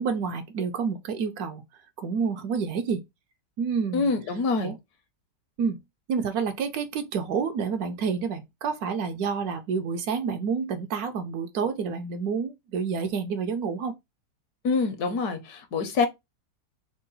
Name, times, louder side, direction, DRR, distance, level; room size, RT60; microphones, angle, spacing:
voice 1, 0.0-1.6 2.0-3.0 3.6-4.1 4.6-4.8 5.6-5.8 6.1-14.0, right 6 dB, 70° right, 1.0 m, -29 dB
voice 2, 3.9-4.7 14.6-16.1, left 4 dB, 70° left, 1.2 m, -25 dB
3.7 x 2.2 x 3.8 m
omnidirectional pair, 1.8 m